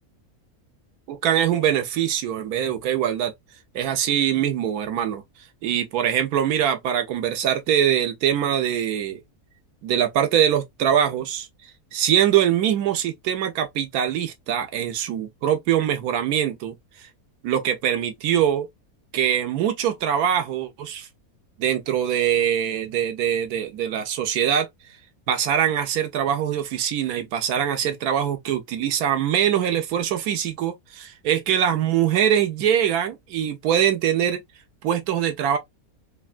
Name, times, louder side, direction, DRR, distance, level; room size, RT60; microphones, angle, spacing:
voice 1, 1.1-3.3 3.7-5.2 5.6-9.2 9.8-11.5 11.9-16.8 17.4-18.7 19.1-21.1 21.6-24.7 25.3-34.4 34.8-35.6, right 9 dB, 85° right, 1.2 m, -23 dB
3.4 x 2.3 x 2.4 m
omnidirectional pair, 1.6 m